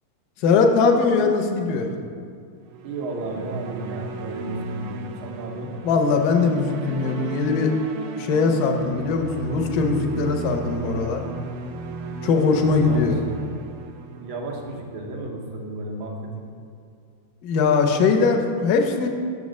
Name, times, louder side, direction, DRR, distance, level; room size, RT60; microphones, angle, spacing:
voice 1, 0.4-1.9 5.8-7.7 8.1-11.2 12.2-13.2 17.4-19.1, left 4 dB, 75° left, 4 dB, 0.9 m, -20 dB
sound 1, 2.7-15.1, right 4 dB, 90° right, 1.5 m, -36 dB
voice 2, 2.8-5.7 12.5-13.4 14.2-16.4, right 2 dB, 70° right, 0 dB, 1.6 m, -33 dB
6.2 x 4.1 x 6.2 m, 2.3 s
omnidirectional pair, 2.3 m